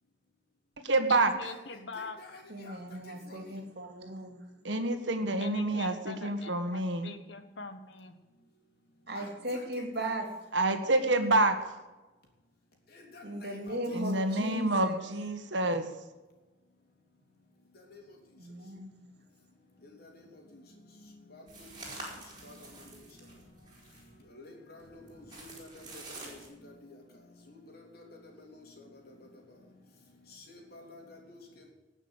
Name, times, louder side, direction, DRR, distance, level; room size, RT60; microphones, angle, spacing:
voice 1, 0.8-1.3 4.6-7.1 10.5-11.8 13.9-15.9, right 2 dB, 75° right, 7 dB, 1.7 m, -28 dB
voice 2, 1.3-2.4 5.4-8.2, left 3 dB, 70° left, 8 dB, 1.5 m, -44 dB
voice 3, 1.9-2.8 3.1-3.5 9.1-10.1 12.9-14.0 17.9-18.0 19.8-20.2 20.5-20.6 21.0-22.0 22.4-22.8 24.3-26.4 26.6-27.0 27.5-29.1 30.3-31.7, left 2 dB, 55° left, 1 dB, 3.5 m, -51 dB
voice 4, 2.5-4.5 9.1-10.3 13.2-15.1 18.4-18.9, right 1 dB, 55° right, 4 dB, 2.9 m, -37 dB
sound 1, 21.5-24.2 24.8-26.5, right 2 dB, 25° right, 4.7 m, -47 dB
18.5 x 6.4 x 8.2 m, 1.2 s
head